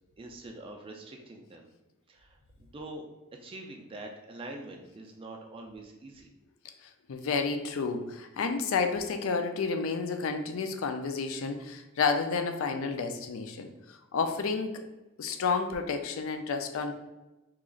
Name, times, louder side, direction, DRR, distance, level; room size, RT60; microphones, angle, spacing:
voice 1, 0.2-1.7 2.1-2.4 2.7-3.0 3.4-6.3, right 2 dB, 25° right, 2 dB, 0.3 m, -44 dB
voice 2, 6.8-14.8 15.2-16.9, left 4 dB, 70° left, 7 dB, 0.4 m, -31 dB
3.0 x 2.4 x 3.7 m, 1.0 s
head